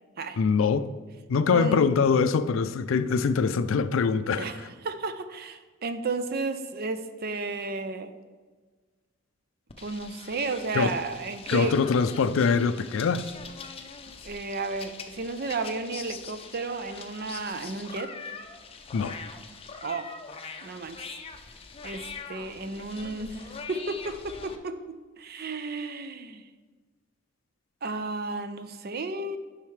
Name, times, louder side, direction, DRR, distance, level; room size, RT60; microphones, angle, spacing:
voice 1, 0.4-0.9 1.3-4.7 10.7-10.9 11.5-13.3 18.9-19.2, left 5 dB, 80° left, 13 dB, 0.4 m, -23 dB
voice 2, 1.5-1.9 4.4-8.1 9.8-11.8 14.2-18.1 19.8-20.1 20.6-21.1 21.8-23.4 23.7-26.4 27.8-29.4, right 3 dB, 50° right, 10 dB, 0.5 m, -33 dB
sound 1, 9.7-24.6, left 5 dB, 30° left, 0.5 m, -43 dB
10.5 x 5.6 x 3.2 m, 1.4 s
head